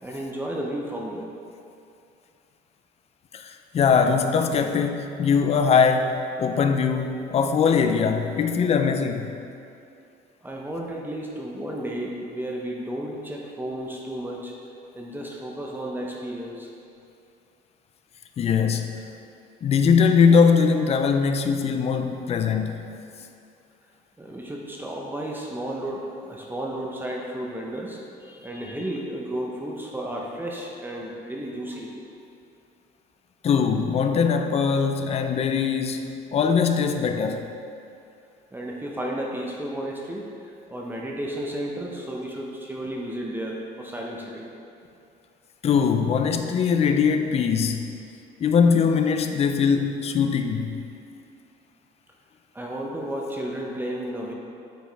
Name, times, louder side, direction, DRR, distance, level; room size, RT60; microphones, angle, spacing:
voice 1, 0.0-1.3 10.4-14.5 14.9-16.7 24.2-31.9 38.5-44.5 52.5-54.3, right 1 dB, 10° right, -2 dB, 0.8 m, -33 dB
voice 2, 3.3-9.3 18.4-19.0 19.6-23.0 33.4-37.5 45.6-47.9 48.4-50.8, left 6 dB, 40° left, 6 dB, 0.5 m, -21 dB
8.9 x 5.0 x 3.4 m, 2.5 s
cardioid pair, 110°, 17 cm